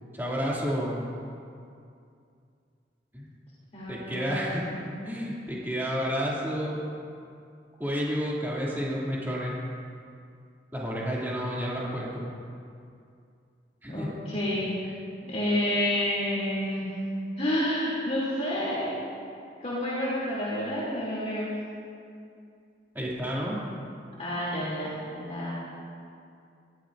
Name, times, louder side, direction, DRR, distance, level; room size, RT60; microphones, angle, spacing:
voice 1, 0.1-1.1 3.1-3.3 3.9-4.6 5.0-6.8 7.8-9.5 10.7-12.2 13.8-14.1 22.9-23.6, equal, 10° right, -6 dB, 2.6 m, -30 dB
voice 2, 3.7-4.8 13.9-14.7 15.3-16.9 17.4-18.9 19.6-21.5 24.2-25.5, left 1 dB, 40° left, -9 dB, 3.0 m, -29 dB
18.5 x 14.0 x 2.6 m, 2.4 s
head